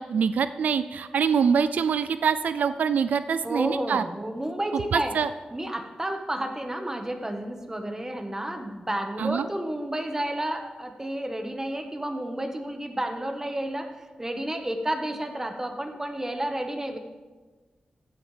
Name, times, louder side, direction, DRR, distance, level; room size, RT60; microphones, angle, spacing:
voice 1, 0.0-4.0 4.9-5.3 9.2-9.5, right 6 dB, 85° right, 13 dB, 0.3 m, -24 dB
voice 2, 3.4-5.1 5.5-13.9 14.2-17.0, right 1 dB, 20° right, 5 dB, 1.4 m, -31 dB
14.5 x 9.2 x 3.4 m, 1.3 s
cardioid pair, 70°, 3 cm